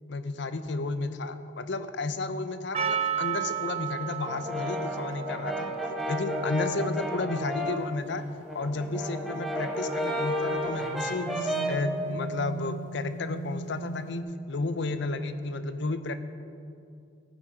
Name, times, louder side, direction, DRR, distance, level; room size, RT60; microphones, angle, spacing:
voice 1, 0.1-5.7 6.1-8.2 8.5-16.2, left 3 dB, 60° left, 10 dB, 0.6 m, -32 dB
Percussion, 2.7-7.7, right 8 dB, 30° right, 0.4 m, -34 dB
Brass instrument, 4.3-7.9 8.3-11.9, equal, ahead, 0.9 m, -32 dB
sound 1, 10.6-14.2, right 2 dB, 40° left, 1.1 m, -39 dB
14.5 x 7.7 x 5.0 m, 2.4 s
head